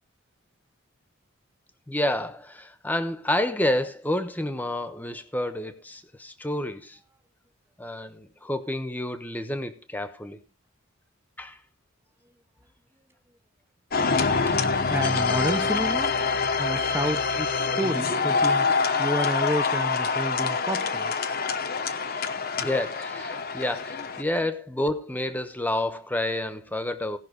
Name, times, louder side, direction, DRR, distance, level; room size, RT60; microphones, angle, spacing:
voice 1, 1.9-7.0 7.8-10.4 11.4-11.6 22.5-27.2, left 1 dB, 10° left, 1.0 m, -29 dB
sound 1, 13.9-24.2, left 5 dB, 45° left, 0.9 m, -25 dB
voice 2, 14.9-16.2 16.6-18.7 19.0-21.1, right 1 dB, 10° right, 0.6 m, -30 dB
17.5 x 5.8 x 5.2 m
head